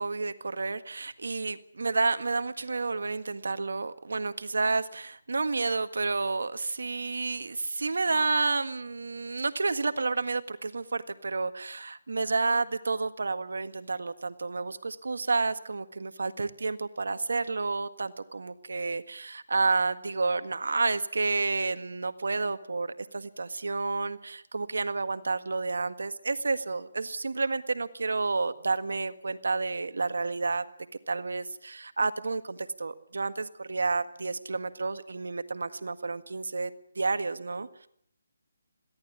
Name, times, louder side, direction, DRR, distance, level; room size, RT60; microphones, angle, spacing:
voice 1, 0.0-30.6 31.1-36.7 36.9-37.9, right 3 dB, 75° right, 11 dB, 1.7 m, -30 dB
22.0 x 16.5 x 9.7 m, 0.70 s
hypercardioid pair, 160°, 0 cm